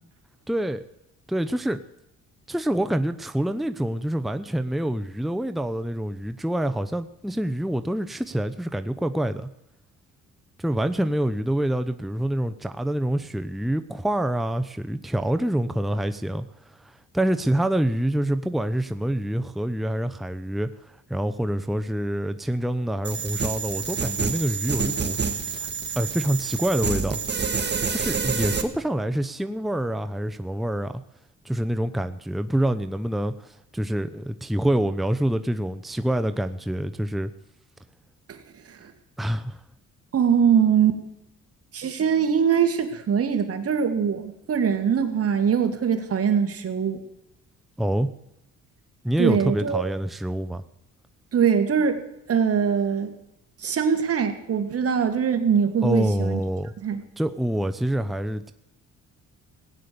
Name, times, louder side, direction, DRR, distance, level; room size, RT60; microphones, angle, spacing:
voice 1, 0.5-0.8 1.3-1.8 2.5-9.5 10.6-16.4 16.8-25.2 25.5-25.7 25.9-27.2 27.9-30.9 31.4-37.3 39.2-39.6 47.8-48.1 49.0-50.6 55.8-56.7 57.2-58.5, right 1 dB, ahead, 9 dB, 0.8 m, -26 dB
sound 1, 23.0-28.6, right 5 dB, 35° right, 1.9 m, -28 dB
voice 2, 40.1-41.0 41.7-47.0 49.2-49.8 51.3-52.0 52.3-53.1 53.6-56.4 56.8-57.0, right 7 dB, 50° right, 7 dB, 2.1 m, -22 dB
17.0 x 9.5 x 6.9 m, 0.86 s
cardioid pair, 90°, 30 cm